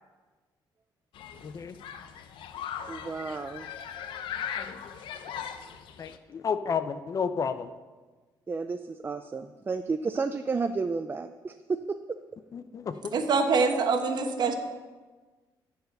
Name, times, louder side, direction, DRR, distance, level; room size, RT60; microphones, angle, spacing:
Human group actions, 1.1-6.2, left 8 dB, 90° left, 0.7 m, -39 dB
voice 1, 1.4-1.8 4.6-4.7 6.0-7.7 12.5-13.1, left 6 dB, 45° left, 11 dB, 0.6 m, -31 dB
voice 2, 2.9-3.7 8.5-12.0, right 4 dB, 25° right, 8 dB, 0.4 m, -32 dB
voice 3, 13.1-14.6, right 4 dB, 60° right, 6 dB, 1.1 m, -24 dB
14.0 x 4.8 x 6.5 m, 1.3 s
cardioid pair, 115°, 8 cm